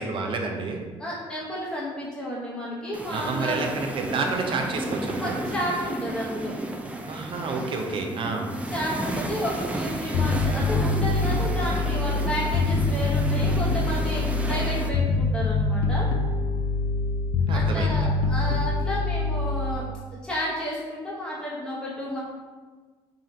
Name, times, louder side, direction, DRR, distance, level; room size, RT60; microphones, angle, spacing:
voice 1, 0.0-0.8 3.1-5.4 7.1-8.5 17.5-18.1, right 4 dB, 50° right, 3 dB, 0.6 m, -29 dB
voice 2, 1.0-3.6 5.2-6.5 8.7-16.1 17.5-22.2, equal, 5° left, -7 dB, 0.9 m, -31 dB
sound 1, 2.9-14.9, right 1 dB, 10° right, 0.4 m, -33 dB
Bass guitar, 10.1-19.7, left 3 dB, 75° left, 0.4 m, -24 dB
3.7 x 2.5 x 4.2 m, 1.4 s
cardioid pair, 90°, 11 cm